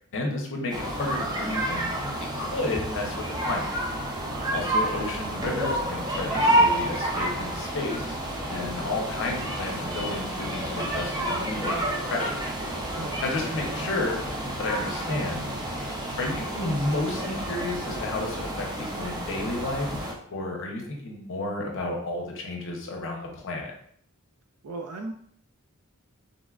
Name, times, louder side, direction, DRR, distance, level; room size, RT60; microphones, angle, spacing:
voice 1, 0.1-1.8 2.2-3.7 4.5-8.2 8.5-12.4 13.2-14.2 14.6-15.5 16.2-19.9 20.3-23.7, left 2 dB, 60° left, 1 dB, 0.7 m, -32 dB
sound 1, 0.7-20.1, right 1 dB, 20° right, 0.5 m, -29 dB
voice 2, 4.2-4.7 12.9-13.5 24.6-25.1, right 3 dB, 70° right, 3 dB, 0.4 m, -38 dB
sound 2, 8.1-19.0, right 2 dB, 90° right, 0.8 m, -47 dB
3.9 x 2.1 x 2.4 m, 0.62 s
head